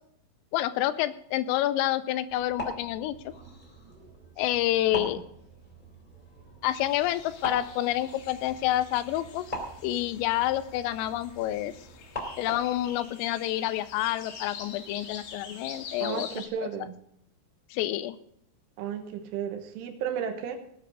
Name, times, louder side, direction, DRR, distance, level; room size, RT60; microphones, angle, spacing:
voice 1, 0.5-3.3 4.4-5.2 6.6-9.4 9.8-11.7 12.4-16.3 17.7-18.2, left 14 dB, 85° left, 14 dB, 3.2 m, -28 dB
sound 1, 2.3-12.8, equal, 10° left, 2.5 m, -42 dB
sound 2, 6.6-16.5, left 6 dB, 70° left, 4.2 m, -46 dB
voice 2, 16.0-17.0 18.8-20.6, right 8 dB, 75° right, 6 dB, 3.6 m, -33 dB
18.5 x 9.1 x 4.9 m, 0.71 s
omnidirectional pair, 6.0 m